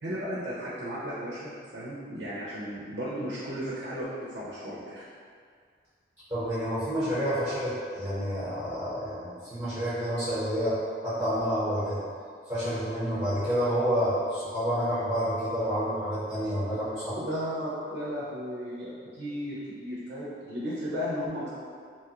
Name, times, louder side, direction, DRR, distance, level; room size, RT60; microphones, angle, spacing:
voice 1, 0.0-5.0 17.2-21.5, equal, 75° right, -8 dB, 0.5 m, -35 dB
voice 2, 6.3-10.8 11.0-12.0 12.5-17.2, equal, 10° right, -15 dB, 0.9 m, -29 dB
3.0 x 2.3 x 2.8 m, 2.1 s
head